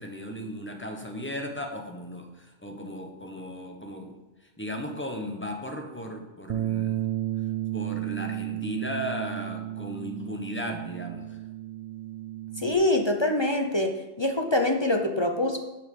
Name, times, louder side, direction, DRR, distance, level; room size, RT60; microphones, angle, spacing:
voice 1, 0.0-4.1 4.6-7.1 7.7-11.4, equal, 10° left, 3 dB, 1.2 m, -36 dB
Bass guitar, 6.5-12.7, right 13 dB, 55° right, 0.5 m, -33 dB
voice 2, 12.6-13.9 14.2-15.6, left 1 dB, 30° left, 4 dB, 0.7 m, -24 dB
10.5 x 5.8 x 5.5 m, 1.0 s
omnidirectional pair, 1.2 m